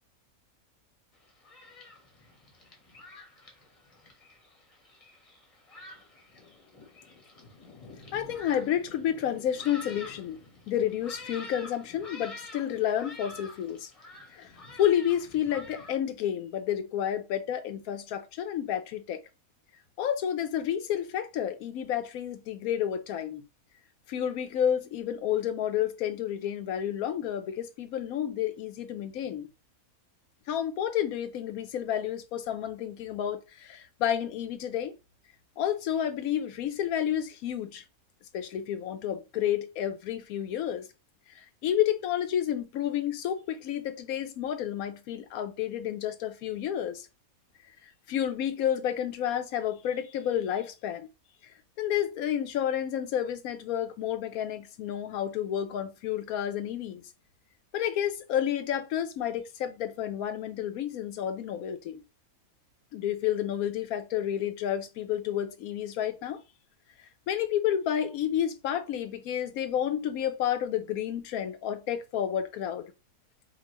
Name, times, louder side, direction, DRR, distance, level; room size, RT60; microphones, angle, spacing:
Thunderstorm, 1.1-16.0, left 2 dB, 30° left, 0.9 m, -48 dB
voice 1, 8.1-10.4 10.7-13.9 14.3-14.5 14.8-19.2 20.0-23.4 24.1-29.5 30.5-34.9 35.6-37.8 38.3-40.9 41.3-47.1 47.8-51.1 51.8-57.0 57.7-62.0 62.9-66.4 67.3-72.9, left 10 dB, 80° left, 1.1 m, -30 dB
5.2 x 2.4 x 3.0 m
omnidirectional pair, 1.5 m